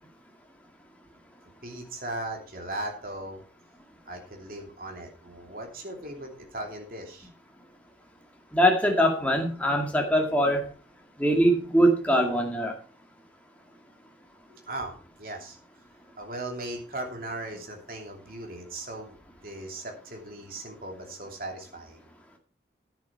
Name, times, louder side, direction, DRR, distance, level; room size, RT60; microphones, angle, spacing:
voice 1, 1.6-3.4 4.1-7.3 14.5-14.9 15.2-15.6 16.2-19.1 19.4-22.1, right 1 dB, 55° right, 2 dB, 2.8 m, -38 dB
voice 2, 8.5-10.7 11.2-12.7, equal, 10° left, 1 dB, 2.1 m, -22 dB
10.5 x 10.0 x 4.4 m, 0.39 s
head